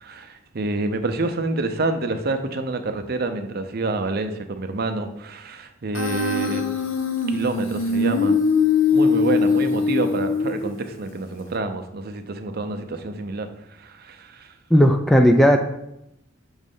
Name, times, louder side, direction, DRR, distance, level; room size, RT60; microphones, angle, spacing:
voice 1, 0.0-6.7 7.3-8.4 8.9-13.5 13.8-14.5, right 2 dB, 50° right, 7 dB, 0.6 m, -27 dB
Human voice, 5.9-10.9, left 4 dB, 75° left, 0.8 m, -21 dB
voice 2, 14.7-15.6, equal, ahead, 4 dB, 0.3 m, -14 dB
6.3 x 3.2 x 5.3 m, 0.81 s
head